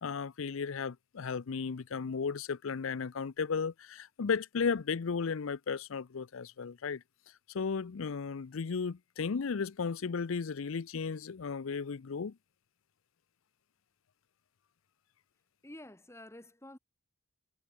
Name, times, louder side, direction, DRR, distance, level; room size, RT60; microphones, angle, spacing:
voice 1, 0.0-7.0 7.5-12.4, left 5 dB, 65° left, 0.5 m, -35 dB
voice 2, 15.6-16.8, left 1 dB, 15° left, 1.7 m, -49 dB
head